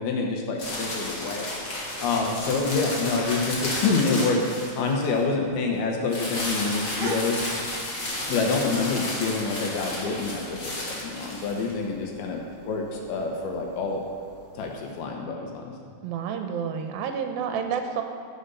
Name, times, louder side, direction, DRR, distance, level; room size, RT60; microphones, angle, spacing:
voice 1, 0.0-1.6 2.0-4.4 4.8-7.4 8.3-14.0 14.6-15.9, left 4 dB, 90° left, 1 dB, 3.2 m, -27 dB
sound 1, 0.6-5.2 6.1-11.7, left 1 dB, 40° left, 1.3 m, -32 dB
sound 2, 6.4-15.0, right 3 dB, 70° right, 2.1 m, -44 dB
voice 2, 16.0-18.0, right 7 dB, 90° right, 5 dB, 2.6 m, -29 dB
15.0 x 5.2 x 5.6 m, 2.3 s
omnidirectional pair, 4.2 m